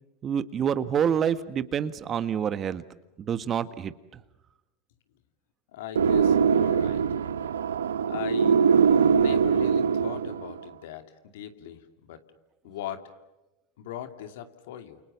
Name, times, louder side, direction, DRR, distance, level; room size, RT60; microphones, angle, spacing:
voice 1, 0.2-2.8 3.2-3.9, right 8 dB, 35° right, 13 dB, 1.6 m, -27 dB
voice 2, 5.7-7.0 8.1-8.6 9.1-12.2 12.6-13.1 13.8-15.0, left 11 dB, 75° left, 8 dB, 2.6 m, -39 dB
sound 1, 5.9-10.6, right 6 dB, 90° right, 1.1 m, -22 dB
30.0 x 28.5 x 7.0 m, 1.0 s
hypercardioid pair, 95°, 0 cm